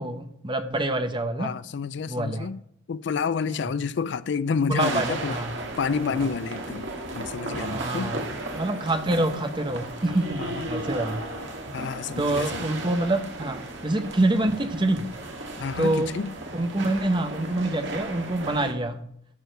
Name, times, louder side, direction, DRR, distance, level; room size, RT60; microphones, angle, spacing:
voice 1, 0.0-1.5 2.1-2.5 3.6-3.8 4.7-5.6 6.1-6.3 7.6-8.2 8.5-11.2 12.2-15.1 15.8-16.1 16.5-19.0, right 1 dB, 25° right, 0.8 m, -26 dB
voice 2, 1.4-2.6 2.9-5.4 5.8-6.9 7.1-8.1 10.4-10.7 11.7-12.7 15.6-16.3, left 5 dB, 60° left, 0.4 m, -29 dB
sound 1, 4.8-18.7, right 2 dB, 65° right, 1.7 m, -35 dB
12.5 x 4.8 x 6.6 m
head